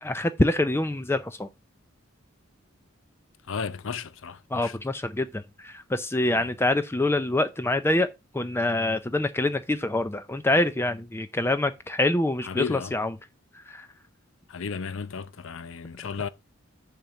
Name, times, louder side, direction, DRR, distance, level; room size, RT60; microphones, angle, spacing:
voice 1, 0.0-1.5 4.5-8.1 8.3-13.1 13.7-13.9, left 2 dB, 10° left, 0.5 m, -25 dB
voice 2, 3.5-4.8 6.4-6.5 12.4-12.9 14.5-16.3, left 6 dB, 65° left, 0.6 m, -34 dB
7.4 x 5.2 x 5.7 m
head